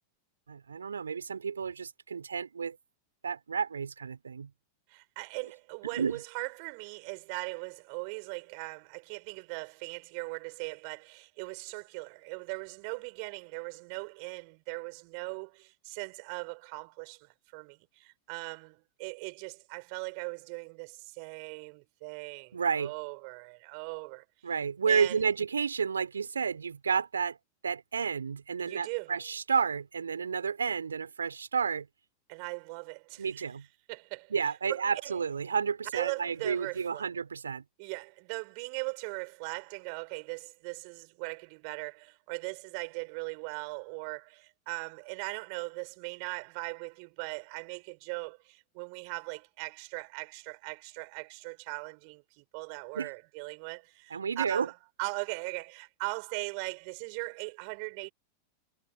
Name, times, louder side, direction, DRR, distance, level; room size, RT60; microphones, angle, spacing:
voice 1, 0.5-2.8 3.2-4.5 6.0-6.2 22.5-22.9 24.4-27.4 27.6-31.9 33.2-33.7 34.3-37.6 53.0-53.1 54.1-54.7, right 6 dB, 70° right, 3.6 m, -31 dB
voice 2, 4.9-24.2 24.9-25.3 28.6-29.1 32.3-33.5 33.9-35.2 35.9-37.1 37.8-54.7 55.0-58.1, right 40 dB or more, 45° right, 5.0 m, -39 dB
figure-of-eight pair, 90°, 0 cm